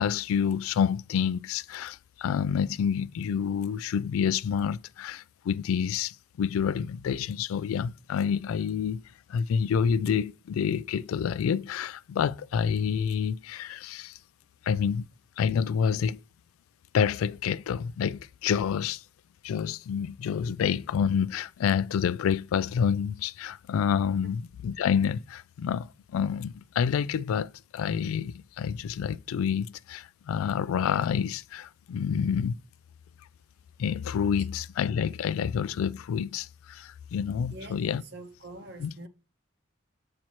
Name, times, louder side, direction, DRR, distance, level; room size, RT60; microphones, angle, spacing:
voice 1, 0.0-9.0 9.3-14.2 14.6-15.1 15.4-16.2 16.9-19.0 19.4-32.6 33.8-38.0 38.8-38.9, left 7 dB, 90° left, 0.3 m, -28 dB
voice 2, 38.1-39.1, right 2 dB, 55° right, 0.7 m, -44 dB
7.4 x 2.9 x 4.5 m
head